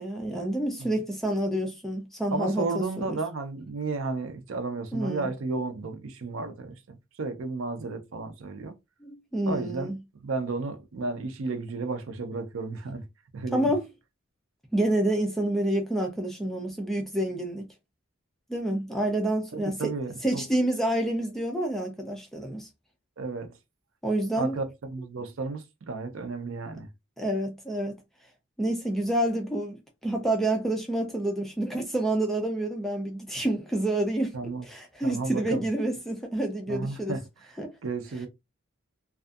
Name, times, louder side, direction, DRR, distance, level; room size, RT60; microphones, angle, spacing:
voice 1, 0.0-3.2 4.9-5.3 9.0-10.0 13.5-13.8 14.7-17.7 18.5-19.9 20.2-22.7 24.0-24.6 27.2-28.0 28.6-37.2 37.6-37.7, right 1 dB, ahead, 0.3 m, -28 dB
voice 2, 2.3-8.7 9.4-9.9 10.2-13.0 13.3-13.7 19.5-20.4 23.2-23.5 24.4-26.9 34.3-34.6 35.0-35.6 36.7-37.2 37.8-38.3, right 3 dB, 70° right, 0.5 m, -33 dB
2.5 x 2.3 x 2.3 m
head